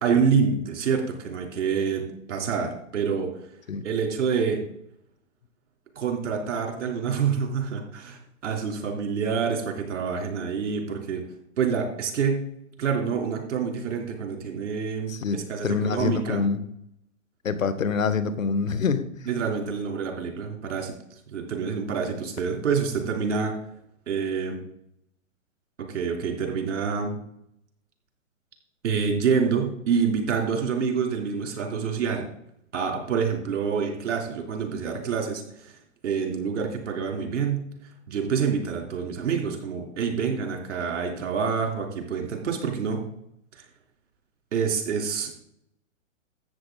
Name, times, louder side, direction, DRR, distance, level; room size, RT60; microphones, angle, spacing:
voice 1, 0.0-2.0 2.3-3.3 3.8-4.6 5.9-11.2 11.6-12.4 12.8-16.4 19.3-20.9 21.3-23.5 24.1-24.6 25.9-27.2 28.8-32.3 32.7-35.7 36.0-37.6 38.1-43.0 44.5-45.3, right 6 dB, 60° right, 3.3 m, -27 dB
voice 2, 15.1-16.7 17.4-19.1, left 5 dB, 80° left, 1.3 m, -26 dB
13.5 x 7.9 x 3.9 m
hypercardioid pair, 125°, 39 cm